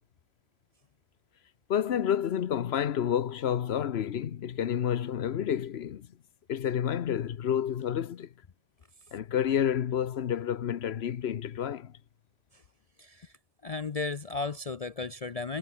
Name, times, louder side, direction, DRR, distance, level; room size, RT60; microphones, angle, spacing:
voice 1, 1.7-6.1 6.5-8.3 9.1-12.0, left 9 dB, 65° left, 1.1 m, -29 dB
voice 2, 13.0-13.3 13.6-15.6, left 4 dB, 40° left, 0.6 m, -34 dB
omnidirectional pair, 1.2 m